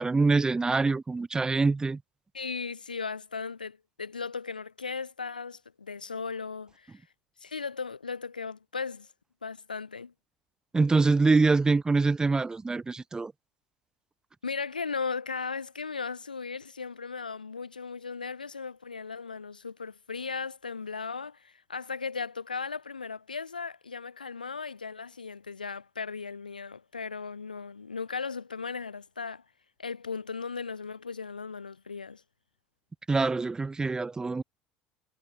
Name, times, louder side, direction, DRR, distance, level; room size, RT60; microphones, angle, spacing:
voice 1, 0.0-2.0 10.7-13.3 33.1-34.4, right 3 dB, 15° right, 1.4 m, -24 dB
voice 2, 2.3-7.0 7.4-9.1 9.4-10.1 14.4-29.4 29.8-32.2, left 5 dB, 80° left, 5.8 m, -37 dB
figure-of-eight pair, 65°, 5 cm